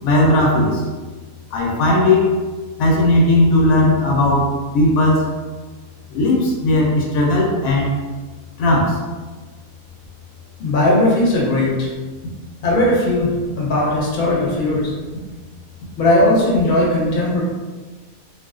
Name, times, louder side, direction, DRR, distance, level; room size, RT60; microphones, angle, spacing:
voice 1, 0.0-0.8 1.5-2.3 2.8-5.3 6.1-8.0 8.6-9.0, left 1 dB, 80° left, -2 dB, 1.0 m, -16 dB
voice 2, 10.6-11.9 12.6-13.3 13.6-14.9 16.0-17.4, left 1 dB, 45° left, -5 dB, 0.7 m, -17 dB
2.4 x 2.3 x 2.3 m, 1.3 s
omnidirectional pair, 1.4 m